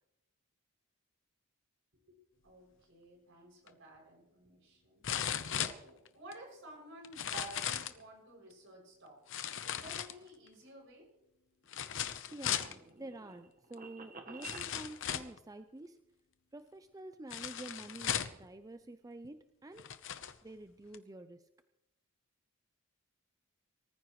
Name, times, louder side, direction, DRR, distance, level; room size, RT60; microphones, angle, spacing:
voice 1, 2.1-5.1 5.5-11.1, right 1 dB, 60° right, 0 dB, 6.8 m, -53 dB
sound 1, 3.7-3.8 5.0-6.3 7.0-8.0 9.3-10.5 11.7-12.7 13.7-13.8 14.4-15.4 17.3-18.4 19.2-19.3 19.8-20.4 20.9-21.0, left 9 dB, 60° left, 0.9 m, -37 dB
sound 2, 11.6-14.7, right 3 dB, 40° right, 1.4 m, -51 dB
voice 2, 12.3-16.0 16.5-19.9 20.4-21.5, right 2 dB, 15° right, 9 dB, 0.5 m, -49 dB
23.5 x 14.5 x 3.2 m, 0.92 s
head